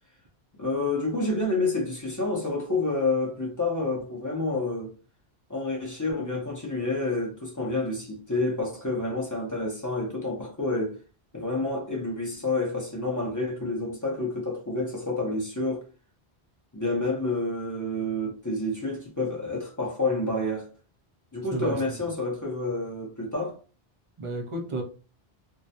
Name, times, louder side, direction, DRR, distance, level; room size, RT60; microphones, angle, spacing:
voice 1, 0.6-4.9 5.5-11.0 11.3-15.8 16.7-20.7 21.3-23.6, left 2 dB, 25° left, 0.5 m, -29 dB
voice 2, 21.5-22.0 24.2-24.8, right 2 dB, 40° right, 0.5 m, -32 dB
2.2 x 2.0 x 2.7 m
omnidirectional pair, 1.0 m